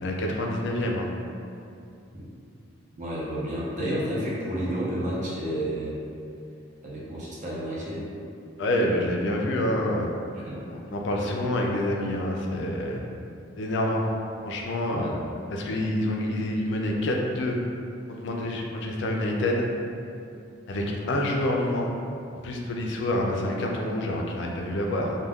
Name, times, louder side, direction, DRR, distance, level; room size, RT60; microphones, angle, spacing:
voice 1, 0.0-1.1 8.6-10.1 10.7-13.0 13.6-14.0 14.4-15.1 15.5-17.6 18.1-19.7 20.7-21.9 22.4-25.2, left 1 dB, 60° left, 0 dB, 0.3 m, -27 dB
voice 2, 3.0-6.0 6.8-8.1 10.4-10.6 14.9-15.1, equal, 40° right, -6 dB, 0.5 m, -30 dB
2.3 x 2.1 x 3.4 m, 2.6 s
head